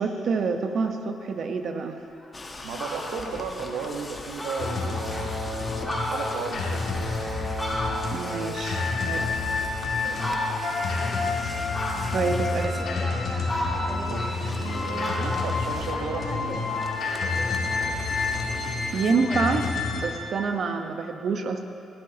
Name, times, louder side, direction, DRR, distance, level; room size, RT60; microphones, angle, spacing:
voice 1, 0.0-2.0 8.1-9.3 12.1-12.9 18.9-21.6, right 4 dB, 60° right, 6 dB, 1.0 m, -27 dB
Fowl, 2.1-2.3 2.6-3.2 3.7-3.8 4.1-4.2 4.4-5.3 5.7-8.3 8.7-9.7 10.2-10.8 11.7-12.4 13.0-14.7 15.0-16.6, left 1 dB, 10° left, 2.1 m, -34 dB
sound 1, 2.3-19.7, left 2 dB, 25° left, 1.1 m, -40 dB
voice 2, 2.6-5.3 5.8-7.1 10.0-10.4 13.9-16.6, right 4 dB, 90° right, 2 dB, 1.2 m, -35 dB
sound 2, 4.6-20.0, left 3 dB, 60° left, 2.1 m, -29 dB
18.5 x 12.0 x 2.9 m, 2.6 s
cardioid pair, 90°, 0 cm